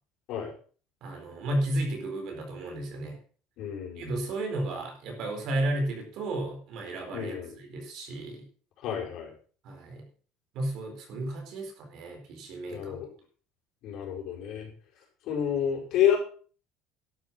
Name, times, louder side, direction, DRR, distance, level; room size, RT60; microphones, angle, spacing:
voice 1, 1.0-3.2 4.0-8.5 9.6-10.0 10.5-12.9, right 1 dB, 45° right, 4 dB, 4.2 m, -33 dB
voice 2, 3.6-4.3 7.1-7.5 8.8-9.3 12.7-13.1 13.8-14.7 15.2-16.2, left 9 dB, 45° left, -1 dB, 5.7 m, -29 dB
12.0 x 10.5 x 6.0 m, 0.42 s
cardioid pair, 175°, 0 cm